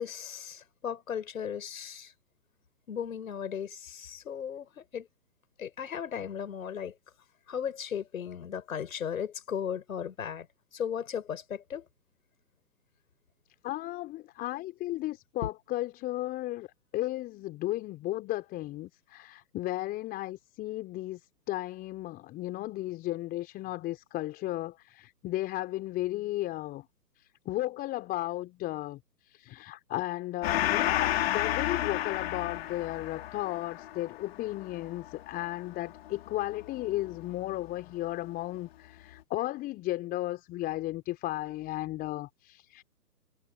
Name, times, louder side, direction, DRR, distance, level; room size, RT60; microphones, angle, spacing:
voice 1, 0.0-2.1 2.9-4.7 4.9-5.0 5.6-6.9 7.5-10.5 10.7-11.8, left 8 dB, 55° left, 7.8 m, -36 dB
voice 2, 13.6-16.7 16.9-21.2 21.5-26.8 27.4-29.0 29.3-42.8, left 16 dB, 20° left, 4.8 m, -34 dB
Gong, 30.4-37.4, left 13 dB, 35° left, 3.1 m, -32 dB
figure-of-eight pair, 140°, 49 cm